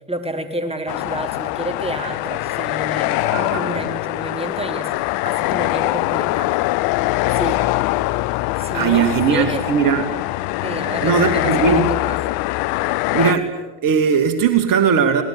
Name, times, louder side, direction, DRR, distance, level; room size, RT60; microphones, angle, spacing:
voice 1, 0.1-6.6 7.3-7.6 8.6-9.6 10.6-12.2, right 1 dB, 15° right, 7 dB, 4.1 m, -29 dB
sound 1, 0.9-13.3, left 19 dB, 60° left, 0.7 m, -22 dB
voice 2, 3.3-3.9 8.7-10.1 11.0-11.9 13.1-13.5 13.8-15.2, right 6 dB, 55° right, 8 dB, 2.5 m, -18 dB
25.0 x 19.5 x 8.8 m, 1.1 s
hypercardioid pair, 60°, 40 cm